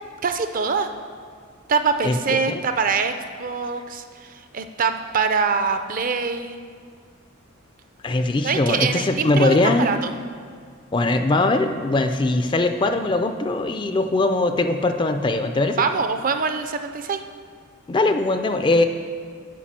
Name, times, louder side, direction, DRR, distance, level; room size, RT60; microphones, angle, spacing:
voice 1, 0.2-0.9 1.7-3.1 3.4-6.6 8.4-10.1 15.8-17.2, right 5 dB, 40° right, 8 dB, 0.5 m, -24 dB
voice 2, 8.0-10.0 10.9-15.8 17.9-18.9, left 2 dB, 20° left, 8 dB, 0.4 m, -21 dB
8.4 x 5.4 x 7.4 m, 2.1 s
head